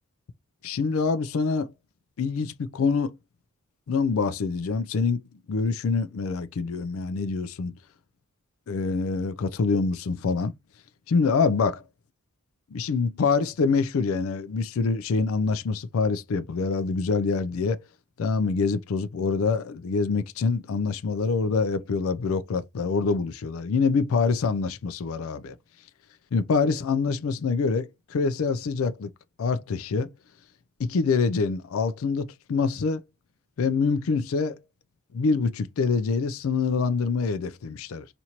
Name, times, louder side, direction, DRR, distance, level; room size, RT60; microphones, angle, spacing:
voice 1, 0.6-1.7 2.2-3.2 3.9-5.2 5.5-7.8 8.7-10.5 11.1-11.8 12.7-17.8 18.2-25.5 26.3-29.1 29.4-30.1 30.8-33.0 33.6-34.6 35.1-38.1, left 4 dB, 75° left, 0.4 m, -25 dB
4.3 x 2.5 x 2.8 m
head